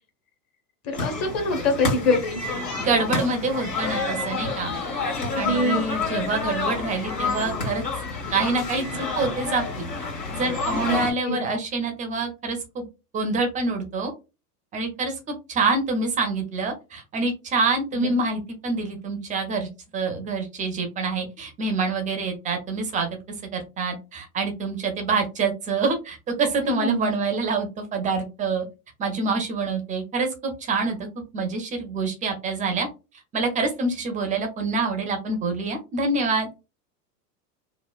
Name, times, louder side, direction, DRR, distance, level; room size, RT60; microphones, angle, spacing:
voice 1, 0.8-2.4 5.3-5.8 10.9-11.0 11.3-11.4 17.9-18.1 26.6-27.1, left 2 dB, 30° left, 4 dB, 0.8 m, -24 dB
sound 1, 0.9-11.1, left 4 dB, 85° left, 1.4 m, -29 dB
voice 2, 2.8-4.8 5.3-7.8 8.3-9.8 10.3-12.9 13.1-14.1 14.7-19.7 19.9-23.1 23.5-28.7 29.0-31.0 31.3-32.9 33.3-36.5, right 3 dB, 15° right, 5 dB, 0.4 m, -26 dB
3.1 x 2.0 x 2.3 m, 0.28 s
hypercardioid pair, 95°, 48 cm